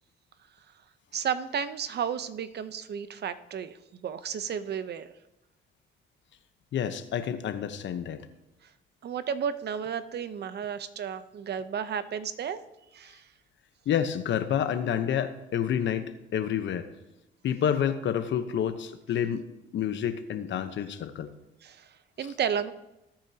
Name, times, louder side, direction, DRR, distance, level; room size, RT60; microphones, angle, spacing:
voice 1, 1.1-5.1 8.6-8.7 9.0-12.6 12.9-13.3 21.6-22.7, right 8 dB, 55° right, 13 dB, 0.8 m, -33 dB
voice 2, 6.7-8.2 13.9-16.9 17.4-19.5 19.7-21.3, left 9 dB, 70° left, 10 dB, 0.9 m, -29 dB
20.0 x 8.9 x 2.8 m, 0.95 s
cardioid pair, 90°, 20 cm